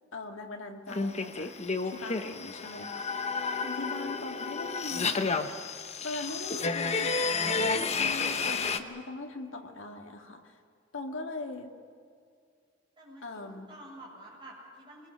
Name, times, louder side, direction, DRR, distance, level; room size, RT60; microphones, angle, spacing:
voice 1, 0.1-5.4 6.0-10.6 10.9-11.7 13.2-13.7, left 2 dB, 80° left, 3 dB, 2.3 m, -41 dB
sound 1, 0.9-8.8, left 4 dB, 35° left, 1.0 m, -31 dB
voice 2, 3.6-4.0 13.0-15.1, right 1 dB, 25° right, -4 dB, 7.8 m, -50 dB
25.5 x 21.5 x 6.6 m, 2.2 s
head